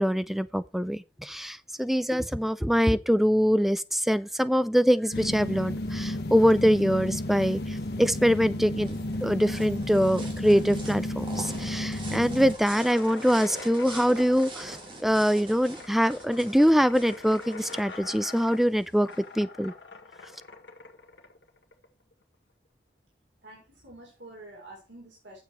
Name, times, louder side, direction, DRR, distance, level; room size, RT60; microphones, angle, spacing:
voice 1, 0.0-19.1 19.3-19.7, equal, ahead, 0.4 m, -24 dB
sound 1, 5.1-12.5, left 1 dB, 65° left, 1.2 m, -32 dB
sound 2, 8.3-19.2, right 2 dB, 30° right, 2.2 m, -44 dB
sound 3, 12.7-22.1, left 3 dB, 80° left, 1.8 m, -44 dB
voice 2, 23.4-25.4, right 2 dB, 90° right, 4.1 m, -47 dB
9.2 x 7.3 x 4.5 m
head